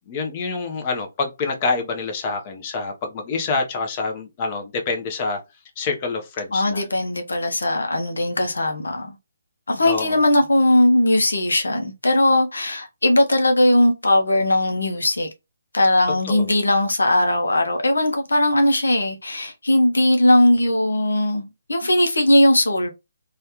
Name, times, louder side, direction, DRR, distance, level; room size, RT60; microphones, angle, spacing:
voice 1, 0.1-5.4 5.8-6.8 9.8-10.2 16.2-16.5, left 4 dB, 30° left, 0.8 m, -26 dB
voice 2, 6.5-9.2 9.7-15.3 15.7-22.9, left 1 dB, 80° left, 0.7 m, -19 dB
3.2 x 2.3 x 2.9 m
figure-of-eight pair, 145°, 0 cm